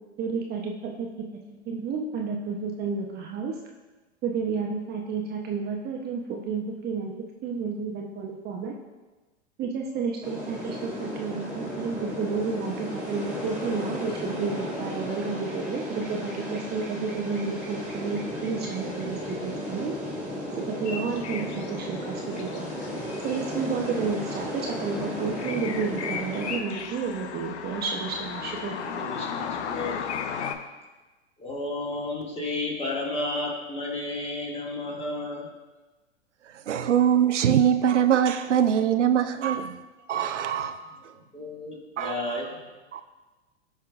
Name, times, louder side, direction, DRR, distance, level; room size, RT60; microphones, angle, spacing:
voice 1, 0.2-1.1 1.5-3.6 4.2-7.1 7.4-8.7 9.6-19.9 20.6-22.6 23.2-29.0, right 5 dB, 30° right, 0.8 m, -31 dB
sound 1, 10.2-26.6, left 1 dB, 5° right, 2.6 m, -34 dB
sound 2, 20.9-30.5, left 7 dB, 70° left, 0.8 m, -36 dB
voice 2, 28.6-30.2 31.4-35.5 40.2-40.3 40.8-42.8, left 2 dB, 15° left, 2.0 m, -33 dB
voice 3, 36.7-39.7 40.1-41.0 42.0-42.1 42.9-43.0, right 9 dB, 90° right, 0.6 m, -22 dB
14.0 x 5.6 x 2.4 m
hypercardioid pair, 105°, 35 cm